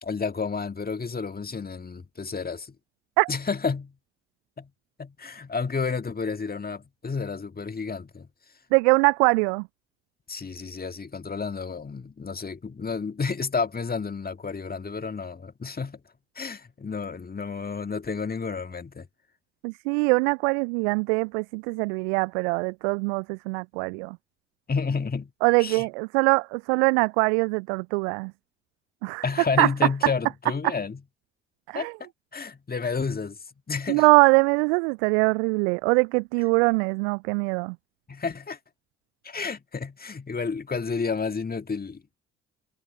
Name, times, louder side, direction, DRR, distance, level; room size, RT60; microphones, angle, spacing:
voice 1, 0.0-2.7 3.3-3.9 4.6-4.7 5.0-8.3 10.3-16.0 16.4-19.1 24.7-25.3 25.6-25.9 29.2-31.0 31.7-33.4 33.7-34.1 38.1-38.6 39.2-42.2, left 5 dB, 25° left, 1.9 m, -31 dB
voice 2, 8.7-9.6 19.6-24.2 25.4-28.3 29.0-29.2 29.6-29.7 31.7-31.9 33.9-37.8, right 33 dB, 70° right, 0.5 m, -22 dB
figure-of-eight pair, 45°, 35 cm